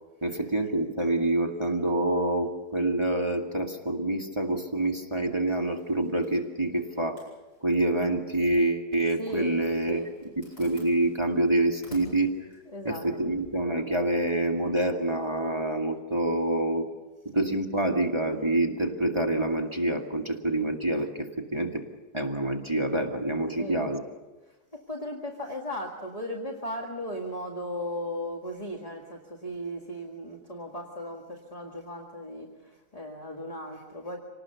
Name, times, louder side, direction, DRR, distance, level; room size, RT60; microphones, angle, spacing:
voice 1, 0.2-7.2 7.6-10.0 10.4-12.4 12.8-16.9 17.3-21.8 22.1-24.0, right 1 dB, 20° right, 2 dB, 1.4 m, -27 dB
Zipper (clothing), 5.5-13.7, left 1 dB, 50° left, 8.3 m, -55 dB
voice 2, 9.2-10.1 12.7-13.3 23.6-23.9 24.5-34.2, equal, 20° left, 1 dB, 1.9 m, -37 dB
26.5 x 19.0 x 6.8 m, 1.2 s
omnidirectional pair, 1.8 m